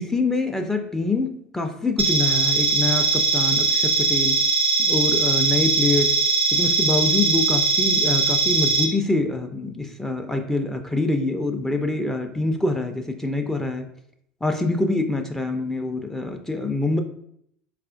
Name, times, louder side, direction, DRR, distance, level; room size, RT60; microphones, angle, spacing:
voice 1, 0.0-4.4 4.8-6.2 6.5-13.9 14.4-17.0, left 2 dB, 5° left, 4 dB, 0.4 m, -25 dB
sound 1, 2.0-8.8, right 3 dB, 80° right, 0.7 m, -20 dB
4.1 x 2.4 x 2.4 m, 0.70 s
hypercardioid pair, 75°, 6 cm